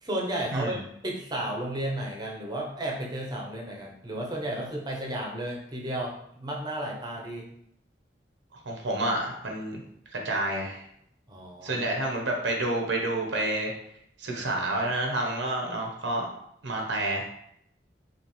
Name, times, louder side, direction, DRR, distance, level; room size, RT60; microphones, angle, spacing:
voice 1, 0.0-7.5 11.3-11.9, right 1 dB, 25° right, -1 dB, 0.8 m, -33 dB
voice 2, 8.5-9.8 10.1-10.8 11.6-13.7 14.2-16.3 16.6-17.3, right 1 dB, 85° right, 1 dB, 0.9 m, -29 dB
5.6 x 2.5 x 3.1 m, 0.74 s
head